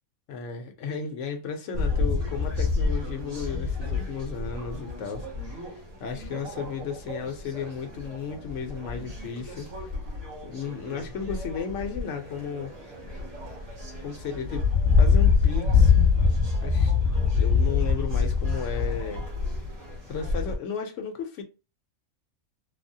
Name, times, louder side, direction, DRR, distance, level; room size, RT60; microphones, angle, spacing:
voice 1, 0.3-5.6 6.0-9.9 10.4-12.8 14.0-14.6 15.0-15.9 16.6-16.9 17.3-19.2 20.1-21.4, left 6 dB, 70° left, 0.9 m, -34 dB
sound 1, 1.7-20.6, left 5 dB, 90° right, 1.5 m, -26 dB
3.3 x 2.1 x 2.6 m
omnidirectional pair, 1.4 m